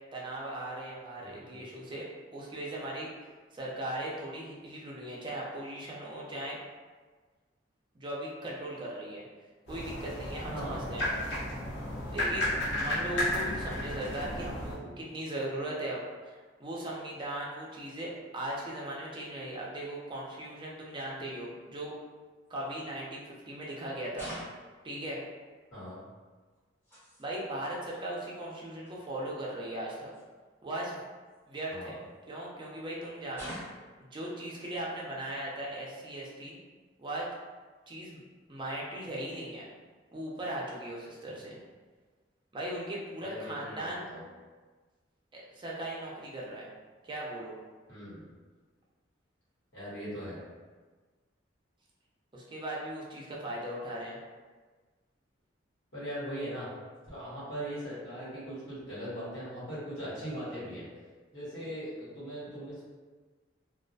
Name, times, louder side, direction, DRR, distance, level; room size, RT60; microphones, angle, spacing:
voice 1, 0.1-2.1 2.3-3.1 3.5-6.6 7.9-9.3 9.7-11.1 12.1-12.5 12.8-21.9 22.5-24.3 24.8-25.2 27.2-30.1 30.6-31.0 31.5-32.0 32.3-33.5 34.1-36.6 37.0-37.3 37.9-38.2 38.5-39.7 40.1-41.6 42.5-44.0 45.3-46.7 47.1-47.6 52.3-54.2, right 1 dB, 25° right, -4 dB, 0.4 m, -38 dB
voice 2, 1.2-1.5 10.5-10.8 25.7-26.0 31.7-31.9 41.2-41.4 43.2-44.2 47.9-48.3 49.7-50.4 55.9-56.7 57.1-60.9 61.3-62.8, equal, 80° left, -10 dB, 1.2 m, -40 dB
sound 1, 9.7-14.8, left 1 dB, 65° left, 0.8 m, -33 dB
sound 2, 22.4-22.6 24.1-24.7 26.5-27.3 28.4-28.5 28.7-28.9 30.1-30.2 31.3-32.2 33.3-34.0, equal, 10° left, 1.0 m, -45 dB
2.3 x 2.1 x 2.6 m, 1.4 s
head